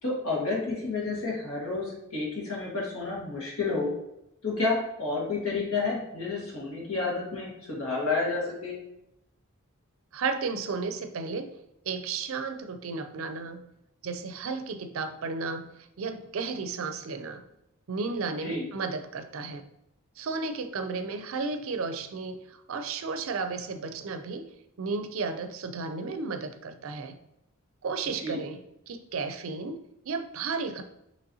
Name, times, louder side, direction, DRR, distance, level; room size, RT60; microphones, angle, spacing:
voice 1, 0.0-3.9 4.4-8.8 18.3-18.7 28.2-28.4, left 3 dB, 80° left, -3 dB, 1.6 m, -30 dB
voice 2, 10.1-11.5 11.9-13.6 14.0-15.7 16.0-17.4 17.9-19.6 20.2-24.5 24.8-27.2 27.8-28.6 28.9-29.8 30.1-30.8, right 4 dB, 70° right, 8 dB, 0.5 m, -33 dB
5.4 x 3.1 x 2.7 m, 0.85 s
head